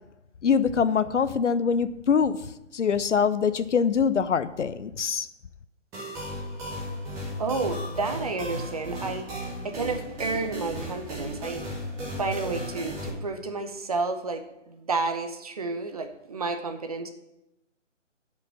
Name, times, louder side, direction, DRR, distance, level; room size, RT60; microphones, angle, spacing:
voice 1, 0.4-2.4 2.7-5.3, left 6 dB, 70° left, 14 dB, 0.7 m, -24 dB
sound 1, 5.9-13.1, equal, 10° right, 1.0 m, -35 dB
voice 2, 7.4-9.3 9.6-11.6 12.2-17.1, right 3 dB, 30° right, 7 dB, 0.7 m, -31 dB
8.3 x 5.3 x 7.6 m, 0.89 s
figure-of-eight pair, 150°, 37 cm